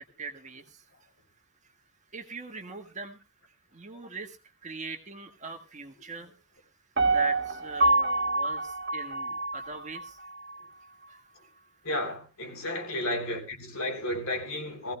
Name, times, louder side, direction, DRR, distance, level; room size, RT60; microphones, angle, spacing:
voice 1, 0.2-0.8 2.1-3.2 3.7-4.4 4.6-6.3 7.0-10.2 11.1-11.2, right 3 dB, 35° right, 1.5 m, -41 dB
Piano, 7.0-10.0 10.5-10.6, right 2 dB, 50° right, 1.8 m, -26 dB
voice 2, 11.8-14.9, left 1 dB, 65° left, 3.4 m, -32 dB
19.5 x 16.0 x 2.3 m
head